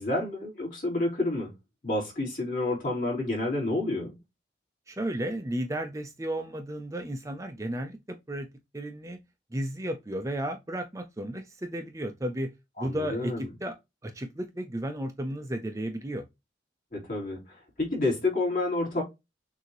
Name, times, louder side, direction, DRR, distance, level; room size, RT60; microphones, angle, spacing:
voice 1, 0.0-1.5 1.8-4.2 12.8-13.5 16.9-19.0, left 2 dB, 45° left, 3.2 m, -29 dB
voice 2, 4.9-8.0 8.3-8.5 8.7-9.2 9.5-12.5 12.8-13.7 14.0-16.2, right 1 dB, 15° right, 0.5 m, -33 dB
6.4 x 2.7 x 2.9 m
head